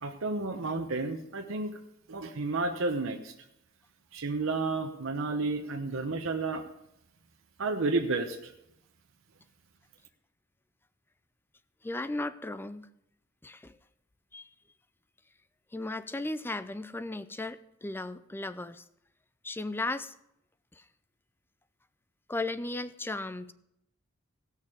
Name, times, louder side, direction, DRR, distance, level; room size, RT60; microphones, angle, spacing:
voice 1, 0.0-1.7 2.1-3.3 4.1-6.6 7.6-8.5, right 3 dB, 80° right, 4 dB, 0.9 m, -31 dB
voice 2, 11.8-12.9 13.4-13.8 14.3-14.5 15.7-18.8 19.4-20.1 20.7-20.8 22.3-23.5, left 2 dB, 10° left, 14 dB, 0.4 m, -36 dB
17.0 x 6.5 x 5.0 m, 0.79 s
head